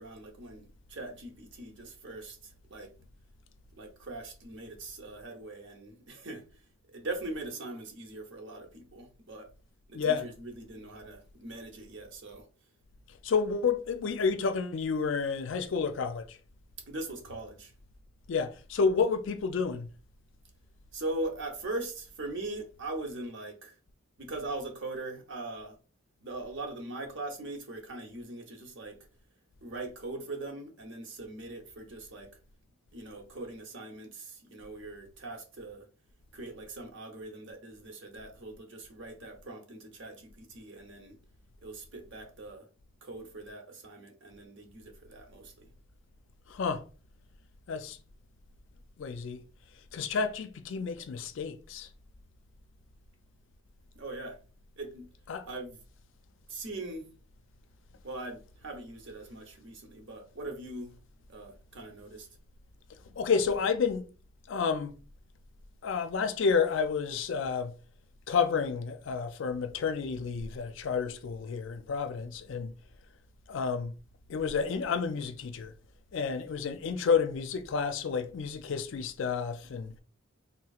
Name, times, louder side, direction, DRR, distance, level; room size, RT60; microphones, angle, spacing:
voice 1, 0.0-2.9 3.8-6.4 6.9-9.5 9.9-12.5 16.9-17.7 20.9-23.8 24.2-25.8 26.2-29.0 29.6-32.3 32.9-35.9 36.3-41.2 41.6-42.7 43.0-45.7 53.9-54.4 54.8-55.1 55.4-55.8 56.5-57.1 58.0-61.0 61.3-62.3, right 2 dB, 60° right, 0.9 m, -41 dB
voice 2, 9.9-10.3 13.2-16.4 18.3-19.9 46.5-46.8 47.7-48.0 49.0-49.4 49.9-51.9 55.3-55.5 63.1-64.1 64.5-64.9 65.8-67.7 68.3-72.7 73.5-73.9 74.3-75.7 76.1-79.9, left 5 dB, 65° left, 0.4 m, -30 dB
3.7 x 2.8 x 2.3 m
head